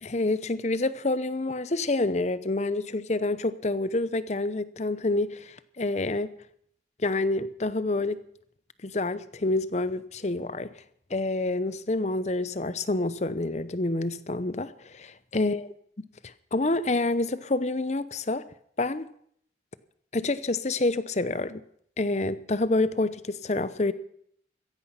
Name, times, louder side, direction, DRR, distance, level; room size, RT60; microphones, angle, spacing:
voice 1, 0.0-6.3 7.0-8.2 8.8-10.7 11.1-15.6 16.2-18.4 18.8-19.1 20.1-21.6 22.0-23.9, left 2 dB, 40° left, 0.7 m, -28 dB
16.0 x 15.0 x 5.7 m
head